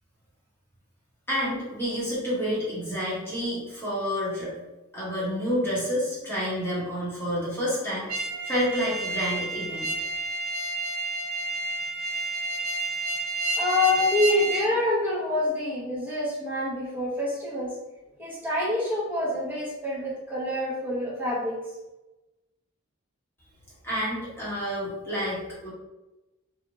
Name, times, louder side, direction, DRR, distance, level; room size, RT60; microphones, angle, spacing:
voice 1, 1.3-4.5 4.9-8.1 8.5-9.9 23.8-25.7, equal, 10° left, -8 dB, 1.1 m, -29 dB
sound 1, 8.1-14.7, right 2 dB, 85° right, 0.4 m, -30 dB
voice 2, 13.6-17.7 18.2-21.6, left 2 dB, 10° right, -7 dB, 1.0 m, -26 dB
2.8 x 2.4 x 2.7 m, 1.0 s
head